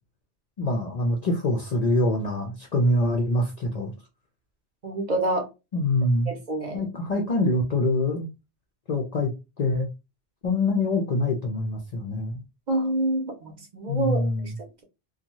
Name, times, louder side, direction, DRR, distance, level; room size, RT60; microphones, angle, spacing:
voice 1, 0.6-3.9 5.7-6.3 6.7-8.3 8.9-9.3 9.6-9.9 10.4-12.4 13.9-14.6, left 1 dB, 50° left, 0.5 m, -25 dB
voice 2, 4.8-5.5 6.3-6.8 12.7-14.5, right 1 dB, 45° right, 0.8 m, -27 dB
2.6 x 2.2 x 2.9 m
omnidirectional pair, 1.1 m